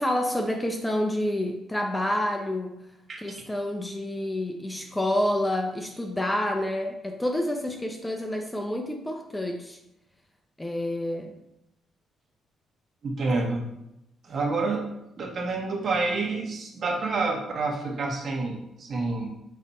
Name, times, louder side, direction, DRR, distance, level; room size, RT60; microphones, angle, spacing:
voice 1, 0.0-2.8 3.2-9.8 10.6-11.3, left 1 dB, 10° left, 3 dB, 0.8 m, -28 dB
voice 2, 13.0-13.6 14.2-14.9 15.2-19.3, right 3 dB, 50° right, 1 dB, 1.5 m, -28 dB
7.0 x 3.3 x 4.4 m, 0.84 s
cardioid pair, 90°, 0 cm